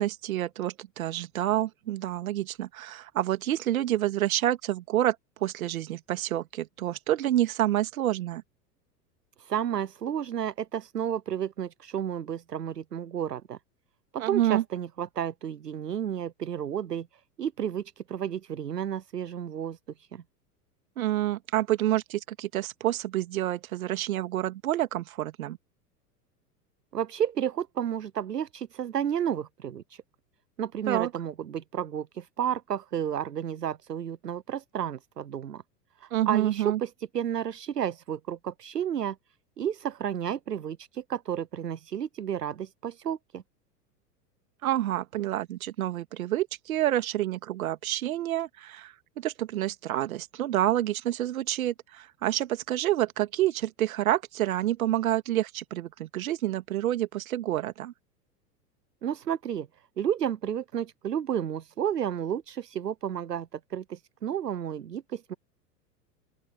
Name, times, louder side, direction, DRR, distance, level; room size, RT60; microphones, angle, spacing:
voice 1, 0.0-5.2 5.4-8.4 14.2-14.6 21.0-25.6 30.9-31.1 36.1-36.8 44.6-57.9, right 13 dB, 60° right, 2.3 m, -28 dB
voice 2, 9.4-13.6 14.1-20.2 26.9-30.0 30.6-35.6 36.0-39.2 39.6-43.4 59.0-59.7 60.0-65.3, right 9 dB, 75° right, 1.0 m, -32 dB
open air
figure-of-eight pair, 90°, 48 cm